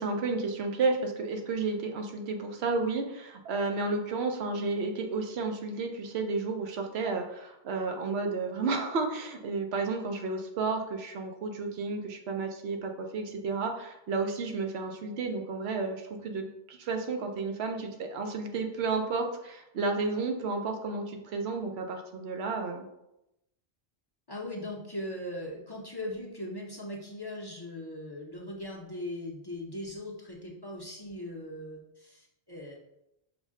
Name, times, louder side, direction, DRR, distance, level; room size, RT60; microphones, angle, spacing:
voice 1, 0.0-22.9, right 3 dB, 85° right, 4 dB, 0.9 m, -32 dB
voice 2, 24.3-32.7, left 1 dB, 30° left, -2 dB, 0.5 m, -39 dB
5.1 x 2.1 x 3.6 m, 0.86 s
omnidirectional pair, 1.1 m